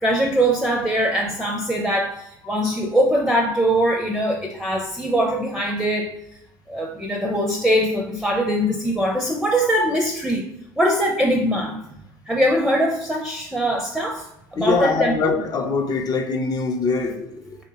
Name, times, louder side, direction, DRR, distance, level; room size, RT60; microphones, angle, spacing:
voice 1, 0.0-6.1 6.7-10.5 10.8-11.8 12.3-14.3 14.5-15.3, equal, ahead, 0.5 m, -22 dB
voice 2, 14.6-17.6, left 4 dB, 40° left, 0.6 m, -23 dB
3.1 x 2.8 x 3.0 m
supercardioid pair, 80°, 10 cm